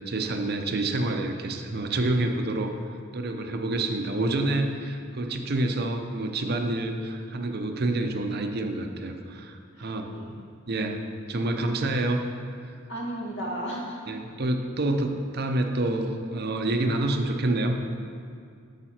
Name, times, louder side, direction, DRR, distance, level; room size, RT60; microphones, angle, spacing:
voice 1, 0.1-2.7 3.1-10.4 10.7-11.0 11.3-12.2 12.6-12.7 14.1-17.8, right 2 dB, 50° right, 4 dB, 0.6 m, -28 dB
voice 2, 9.7-10.4 12.9-14.1, right 1 dB, 60° left, -3 dB, 1.8 m, -35 dB
9.0 x 6.7 x 4.4 m, 2.3 s
head